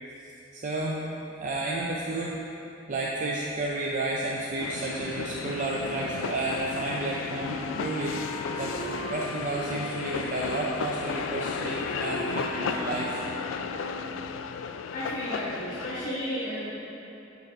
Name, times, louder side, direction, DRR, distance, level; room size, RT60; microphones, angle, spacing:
voice 1, 0.5-1.0 1.4-2.4 2.9-8.2 8.6-13.2, right 2 dB, 40° right, -3 dB, 0.5 m, -31 dB
sound 1, 4.6-16.1, left 6 dB, 80° left, 0.3 m, -34 dB
Wind instrument woodwind instrument, 7.3-14.3, right 1 dB, 15° right, 0.8 m, -40 dB
voice 2, 14.9-16.7, equal, 50° left, -10 dB, 1.1 m, -33 dB
8.0 x 4.0 x 4.3 m, 3.0 s
head